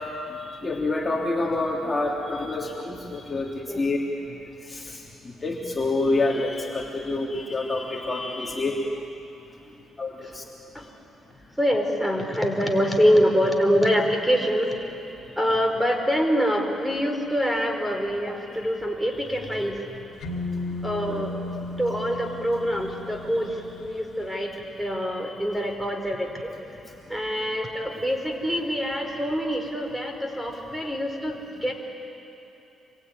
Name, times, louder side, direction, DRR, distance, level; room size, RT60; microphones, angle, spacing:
voice 1, 0.6-4.0 4.7-5.0 5.4-8.8 10.0-10.4 18.5-18.6 21.1-21.3, left 2 dB, 25° left, -1 dB, 3.1 m, -27 dB
voice 2, 11.6-14.7 15.4-19.8 20.8-21.3 21.8-23.5 23.8-24.5 24.8-26.5 27.1-31.7, equal, 5° right, 3 dB, 4.3 m, -25 dB
sound 1, 20.2-24.1, left 2 dB, 70° left, 2.8 m, -35 dB
26.5 x 23.0 x 9.7 m, 2.9 s
cardioid pair, 90°, 0 cm